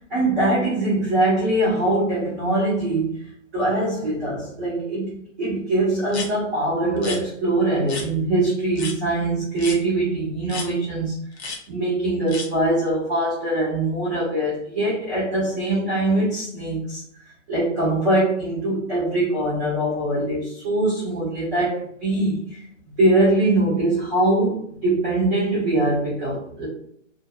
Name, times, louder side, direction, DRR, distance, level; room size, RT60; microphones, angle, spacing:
voice 1, 0.1-11.1 11.7-17.0 17.5-22.6 23.0-26.7, right 2 dB, 5° right, -18 dB, 0.5 m, -22 dB
sound 1, 6.1-6.3 7.0-7.2 7.9-8.1 8.7-9.0 9.6-9.8 10.5-10.7 11.4-11.6 12.3-12.5, left 4 dB, 55° left, 0.8 m, -32 dB
2.6 x 2.5 x 2.3 m, 0.65 s
hypercardioid pair, 165°, 38 cm